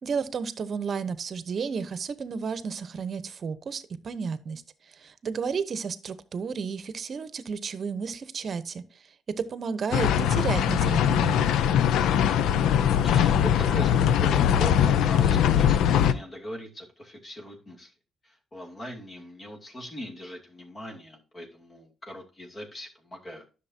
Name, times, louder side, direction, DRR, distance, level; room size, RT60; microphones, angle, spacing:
voice 1, 0.0-4.6 5.0-8.8 9.5-11.5, right 5 dB, 50° right, 14 dB, 0.9 m, -32 dB
sound 1, 9.9-16.1, left 9 dB, 85° left, 0.5 m, -21 dB
voice 2, 12.5-17.9 18.2-23.4, equal, 30° left, 1 dB, 2.5 m, -40 dB
10.5 x 6.6 x 2.8 m, 0.32 s
cardioid pair, 90°, 0 cm